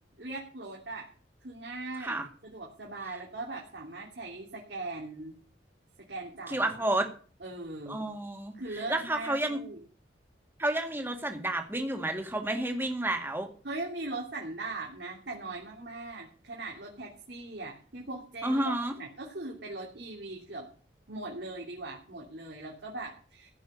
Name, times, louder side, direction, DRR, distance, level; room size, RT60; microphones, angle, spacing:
voice 1, 0.2-1.1 1.4-5.4 6.1-6.7 7.4-8.0 8.5-9.8 13.6-20.6 21.1-23.5, right 2 dB, 65° right, -2 dB, 3.0 m, -40 dB
voice 2, 6.5-7.1 7.9-9.6 10.6-13.5 18.4-19.0, right 1 dB, 10° right, 4 dB, 2.1 m, -30 dB
15.5 x 6.2 x 8.7 m, 0.42 s
head